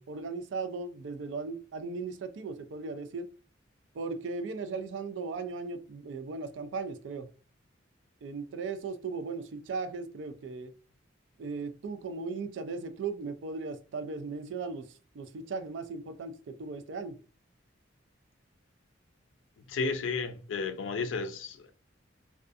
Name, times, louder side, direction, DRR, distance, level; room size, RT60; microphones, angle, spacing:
voice 1, 0.0-3.3 3.9-7.3 8.2-10.7 11.4-17.2, right 4 dB, 70° right, 0.3 m, -37 dB
voice 2, 19.7-21.7, left 4 dB, 75° left, 0.4 m, -33 dB
2.4 x 2.3 x 2.5 m
head